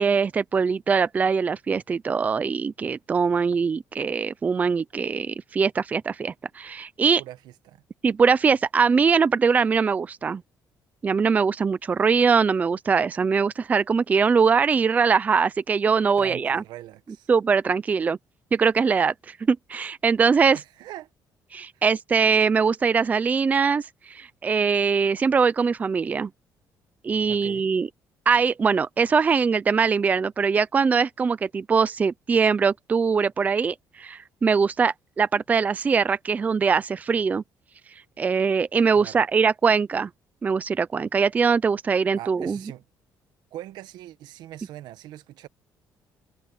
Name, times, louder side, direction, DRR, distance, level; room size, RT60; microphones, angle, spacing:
voice 1, 0.0-7.2 8.0-10.4 11.0-16.6 17.3-18.2 18.5-20.6 21.5-26.3 27.0-27.9 28.3-37.4 38.2-40.1 40.4-42.6, right 5 dB, 20° right, 0.5 m, -22 dB
voice 2, 7.2-7.8 16.2-17.3 20.5-21.1 21.7-21.8 27.3-27.7 38.9-39.2 42.1-42.8 43.5-45.5, right 14 dB, 85° right, 1.2 m, -41 dB
cardioid pair, 160°, 7 cm